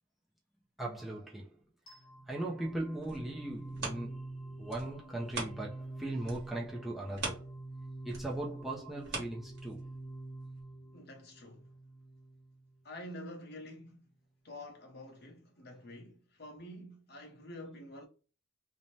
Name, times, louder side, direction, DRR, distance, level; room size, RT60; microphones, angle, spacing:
voice 1, 0.8-1.6 2.3-7.5 8.0-9.9, right 1 dB, ahead, 0.4 m, -39 dB
sound 1, 1.9-12.8, right 2 dB, 65° left, 1.1 m, -47 dB
sound 2, 2.8-5.9 6.2-10.0 10.5-10.6, right 3 dB, 50° right, 1.2 m, -43 dB
voice 2, 10.9-11.7 12.8-14.1 14.4-18.1, left 1 dB, 50° left, 0.7 m, -48 dB
2.6 x 2.1 x 3.0 m
head